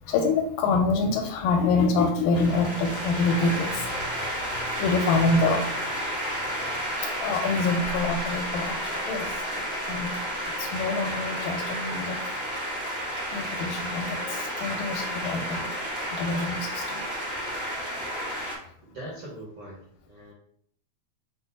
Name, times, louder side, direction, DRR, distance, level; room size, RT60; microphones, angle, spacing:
voice 1, 0.0-4.2 4.5-5.6 7.2-8.8 9.1-9.3 9.9-10.1 10.6-12.2 13.3-15.7 16.1-17.0, left 3 dB, 80° left, 3 dB, 2.0 m, -26 dB
sound 1, 2.3-18.6, equal, 50° right, 0.5 m, -31 dB
voice 2, 18.8-20.3, right 1 dB, 85° right, -5 dB, 1.2 m, -41 dB
6.1 x 2.0 x 4.0 m, 0.65 s
omnidirectional pair, 4.4 m